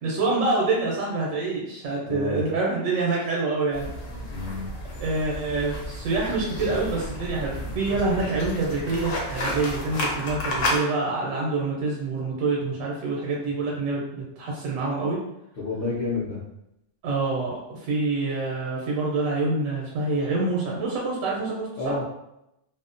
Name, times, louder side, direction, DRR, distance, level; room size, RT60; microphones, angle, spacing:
voice 1, 0.0-3.9 5.0-15.2 17.0-21.9, right 3 dB, 85° right, -4 dB, 1.0 m, -26 dB
voice 2, 2.0-2.4 4.3-4.6 15.5-16.4 21.8-22.0, left 3 dB, 55° left, -9 dB, 0.6 m, -29 dB
sound 1, 3.7-10.8, left 1 dB, 80° left, 1.0 m, -32 dB
2.6 x 2.1 x 2.4 m, 0.85 s
omnidirectional pair, 1.3 m